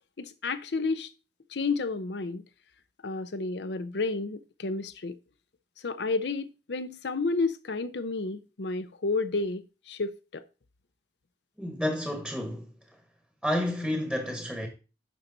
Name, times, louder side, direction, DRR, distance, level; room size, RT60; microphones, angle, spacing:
voice 1, 0.2-1.1 1.5-2.4 3.0-5.2 5.8-10.4, left 3 dB, 75° left, 0.7 m, -31 dB
voice 2, 11.6-12.7 13.4-14.7, left 1 dB, 5° left, 1.1 m, -30 dB
11.5 x 4.5 x 3.9 m
head